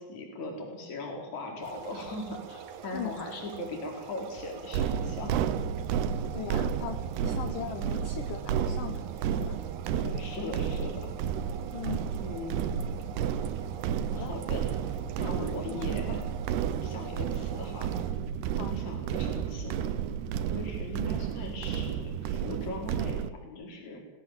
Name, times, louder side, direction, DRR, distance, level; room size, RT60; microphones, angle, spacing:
voice 1, 0.0-5.4 10.0-11.1 12.2-12.8 14.2-16.2 16.8-17.9 18.7-19.9 20.5-24.0, left 2 dB, 45° left, 2 dB, 5.7 m, -39 dB
sound 1, 1.6-18.1, right 7 dB, 60° right, 2.3 m, -45 dB
sound 2, 4.7-23.3, right 8 dB, 85° right, 3.1 m, -32 dB
voice 2, 6.3-9.6 11.7-12.1 14.1-14.3 15.4-16.2 18.6-18.7, left 10 dB, 65° left, 9 dB, 2.3 m, -40 dB
25.5 x 18.5 x 7.6 m, 1.0 s
omnidirectional pair, 4.6 m